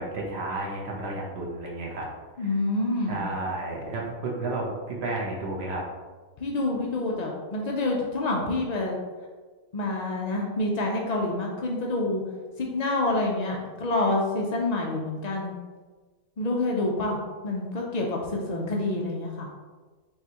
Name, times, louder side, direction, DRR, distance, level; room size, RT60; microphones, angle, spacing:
voice 1, 0.0-2.1 2.4-2.5 3.1-5.8, right 2 dB, 50° right, -2 dB, 1.1 m, -32 dB
voice 2, 2.4-3.2 6.4-9.0 9.7-12.2 12.6-15.6 16.4-17.2 17.4-19.5, left 2 dB, 85° left, -1 dB, 0.3 m, -27 dB
4.6 x 3.2 x 2.9 m, 1.3 s
omnidirectional pair, 1.5 m